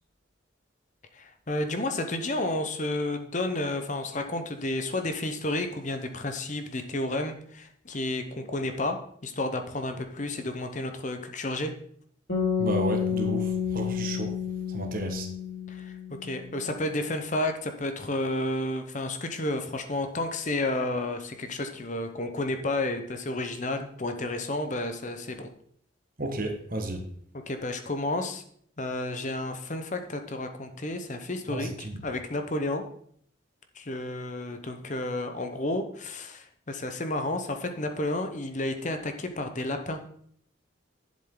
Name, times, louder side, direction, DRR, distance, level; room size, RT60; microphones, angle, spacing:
voice 1, 1.1-11.7 15.7-25.5 27.3-28.4 28.8-32.8 33.7-40.0, left 2 dB, 35° left, 7 dB, 0.9 m, -31 dB
sound 1, 12.3-16.5, left 7 dB, 60° left, 3.7 m, -30 dB
voice 2, 12.6-14.3 14.7-15.3 26.2-27.0 31.5-32.0, right 2 dB, 45° right, 4 dB, 1.5 m, -32 dB
11.0 x 7.4 x 3.9 m, 0.64 s
head